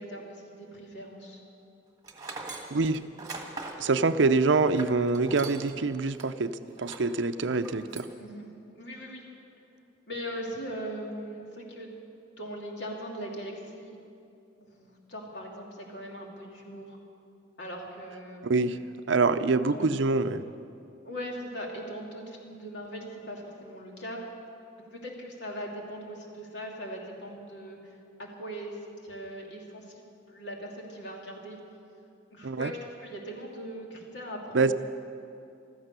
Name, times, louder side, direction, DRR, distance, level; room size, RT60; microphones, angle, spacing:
voice 1, 0.0-1.4 8.2-8.5 8.8-9.2 10.1-11.9 12.4-14.0 14.6-17.0 17.6-18.4 19.7-19.9 21.0-24.2 24.9-31.6 32.3-34.7, equal, 65° left, -1 dB, 2.7 m, -40 dB
Tools, 2.0-5.8 6.1-6.3 6.8-7.1 7.5-8.1, right 3 dB, 20° right, 1.5 m, -41 dB
voice 2, 2.7-3.0 3.8-8.1 18.4-18.8 19.1-20.5 32.4-32.7 34.5-34.7, right 3 dB, 75° right, 12 dB, 0.6 m, -25 dB
15.5 x 13.5 x 6.8 m, 2.6 s
head